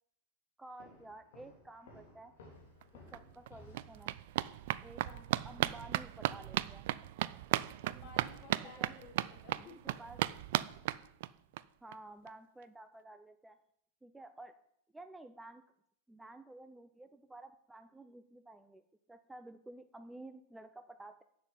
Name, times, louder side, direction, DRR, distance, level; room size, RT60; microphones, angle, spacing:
voice 1, 0.6-2.3 3.1-4.2 4.8-5.0 5.4-6.8 8.6-8.9 9.6-9.7 10.0-10.2 11.8-13.6 14.0-14.5 14.9-15.6 16.1-21.2, right 2 dB, 5° right, 9 dB, 0.6 m, -52 dB
Walk footsteps, 0.8-4.1, left 2 dB, 55° left, 3.3 m, -57 dB
sound 1, 2.8-2.9 3.1-11.6 11.9-12.0 12.3-12.4 12.6-12.7, right 15 dB, 50° right, 0.4 m, -36 dB
voice 2, 7.8-10.0, left 4 dB, 35° left, 1 dB, 3.6 m, -54 dB
11.0 x 7.5 x 7.8 m, 0.75 s
figure-of-eight pair, 90°, 0 cm